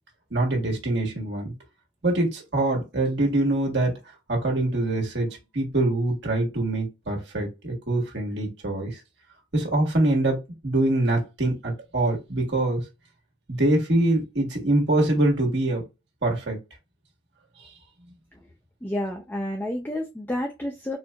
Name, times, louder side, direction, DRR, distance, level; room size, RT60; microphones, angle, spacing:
voice 1, 0.3-1.5 2.0-3.9 4.3-5.3 5.5-9.0 9.5-12.8 13.5-15.8 16.2-16.6, right 2 dB, 60° right, 1.5 m, -24 dB
voice 2, 18.8-21.0, left 1 dB, 10° left, 0.4 m, -30 dB
4.4 x 2.5 x 2.3 m
head